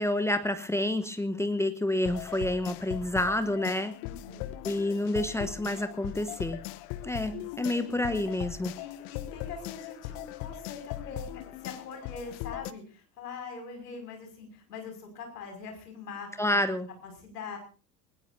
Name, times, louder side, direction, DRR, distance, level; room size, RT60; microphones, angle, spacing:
voice 1, 0.0-3.9 4.6-6.6 7.0-8.7 16.4-16.9, left 1 dB, 5° left, 10 dB, 1.0 m, -29 dB
sound 1, 2.0-12.7, left 14 dB, 50° left, 1.1 m, -39 dB
voice 2, 4.0-4.5 7.2-7.5 8.7-16.6 17.0-17.6, left 5 dB, 70° left, 4 dB, 6.0 m, -43 dB
21.0 x 20.0 x 2.7 m, 0.35 s
figure-of-eight pair, 75°, 49 cm